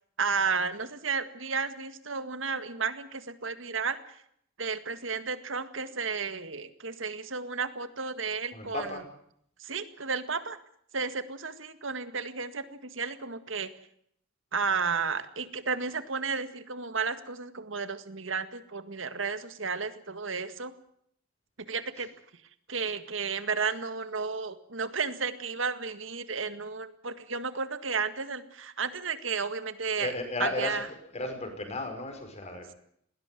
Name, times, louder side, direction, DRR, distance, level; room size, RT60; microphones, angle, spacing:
voice 1, 0.2-4.0 4.6-8.9 9.6-10.6 10.9-13.7 14.5-20.7 21.7-22.1 22.7-30.1 30.4-30.9, right 5 dB, 75° right, 11 dB, 1.9 m, -32 dB
voice 2, 8.5-9.0 30.0-30.8 31.1-32.8, left 2 dB, 35° left, 5 dB, 5.6 m, -34 dB
20.0 x 17.5 x 9.2 m, 0.68 s
head